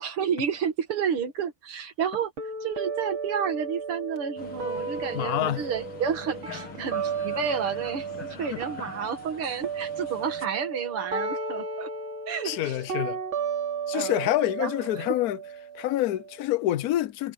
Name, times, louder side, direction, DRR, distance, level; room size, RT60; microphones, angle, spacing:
voice 1, 0.0-2.3 2.6-11.9 12.3-12.8 13.9-14.3 14.6-15.0, right 7 dB, 85° right, 2.7 m, -31 dB
sound 1, 2.4-8.3 8.6-16.4, right 5 dB, 70° right, 3.3 m, -34 dB
sound 2, 4.4-10.5, left 5 dB, 85° left, 3.3 m, -44 dB
voice 2, 5.1-5.6 8.5-8.6 12.4-13.2 13.9-15.4 15.7-17.3, left 14 dB, 65° left, 0.9 m, -27 dB
omnidirectional pair, 2.3 m